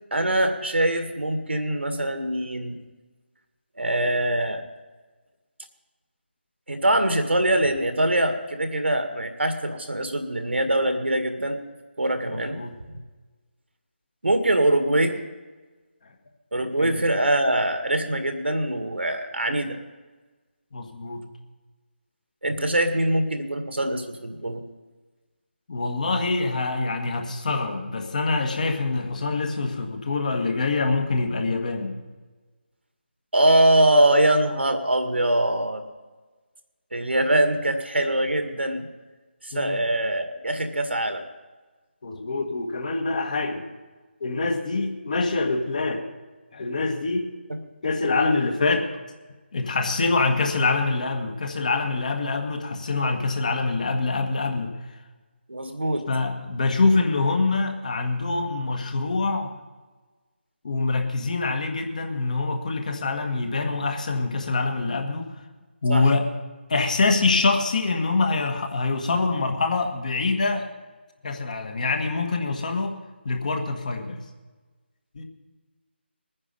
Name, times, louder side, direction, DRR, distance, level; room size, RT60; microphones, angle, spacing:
voice 1, 0.1-2.8 3.8-4.6 6.7-11.6 12.0-12.6 14.2-15.2 16.5-19.8 22.4-24.6 33.3-35.9 36.9-38.9 39.4-41.2 55.5-56.1 65.9-66.0, right 1 dB, 75° right, 6 dB, 1.9 m, -23 dB
voice 2, 12.3-12.8 16.8-17.0 20.7-21.3 25.7-31.9 39.5-39.8 42.0-43.7 44.2-46.0 46.5-47.3 47.8-48.9 49.5-54.8 56.1-59.5 60.6-65.4 65.8-66.3 66.7-70.7 71.2-72.9 73.3-74.2 75.1-75.2, left 3 dB, 40° left, 5 dB, 1.7 m, -25 dB
21.0 x 9.9 x 5.4 m, 1.3 s
figure-of-eight pair, 155°, 6 cm